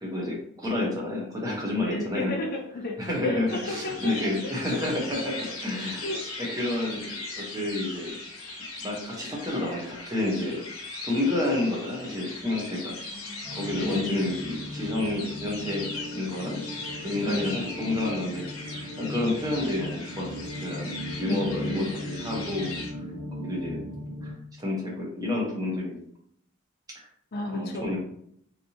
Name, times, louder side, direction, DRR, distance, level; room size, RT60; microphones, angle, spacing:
voice 1, 0.0-2.3 3.0-6.0 6.4-8.2 8.8-10.6 11.0-13.0 13.5-16.6 17.0-18.5 19.0-22.7 23.4-23.8 24.2-26.0 26.9-27.1 27.5-28.0, left 2 dB, 15° right, -3 dB, 0.8 m, -30 dB
voice 2, 1.8-4.3 4.7-4.8 6.0-6.6 13.1-13.5 13.7-14.1 17.2-17.4 21.2-21.9 27.3-28.0, left 1 dB, 45° left, 2 dB, 0.5 m, -33 dB
sound 1, 3.5-22.9, left 3 dB, 80° left, 0.9 m, -39 dB
sound 2, 13.4-24.3, left 1 dB, 55° right, 1.4 m, -38 dB
3.3 x 2.7 x 2.7 m, 0.67 s
head